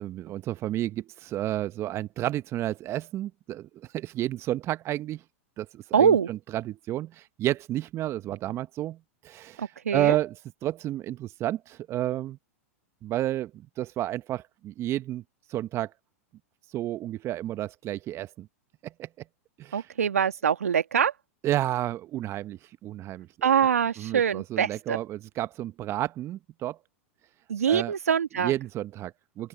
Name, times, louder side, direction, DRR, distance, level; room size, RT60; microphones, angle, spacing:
voice 1, 0.0-5.2 5.6-10.3 10.6-12.4 13.0-13.5 13.8-15.2 15.5-15.9 16.7-18.5 18.8-19.1 19.6-19.9 21.4-23.5 24.0-26.8 27.7-27.9 28.4-29.5, right 14 dB, 35° right, 1.2 m, -31 dB
voice 2, 5.9-6.3 9.6-10.2 19.7-21.1 23.4-25.0 27.5-28.5, right 8 dB, 80° right, 1.9 m, -24 dB
open air
hypercardioid pair, 100°, 8 cm